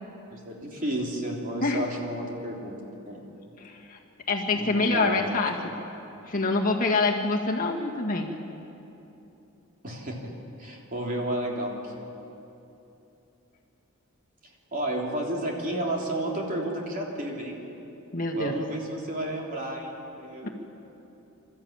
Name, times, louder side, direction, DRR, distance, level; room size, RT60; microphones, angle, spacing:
voice 1, 0.3-2.8 3.0-3.2 4.5-5.3 9.8-10.3 10.6-12.1 14.7-17.6 18.3-20.5, right 1 dB, 40° right, -1 dB, 3.4 m, -32 dB
voice 2, 3.6-4.0 4.3-5.8 6.3-8.3 18.1-18.6 20.4-20.5, left 3 dB, 40° left, 0 dB, 1.8 m, -26 dB
26.5 x 13.5 x 8.8 m, 2.9 s
head